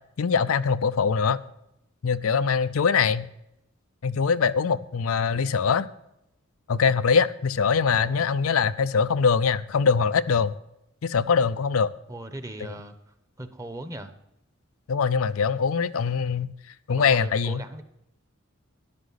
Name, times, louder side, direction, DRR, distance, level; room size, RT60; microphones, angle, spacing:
voice 1, 0.2-1.4 2.0-3.3 4.0-5.9 6.7-10.5 11.0-11.9 14.9-16.5 16.9-17.6, left 5 dB, 85° left, 0.5 m, -23 dB
voice 2, 7.8-8.3 12.1-13.0 13.4-14.1 16.9-17.8, right 1 dB, 15° right, 0.9 m, -39 dB
13.0 x 10.5 x 4.1 m
head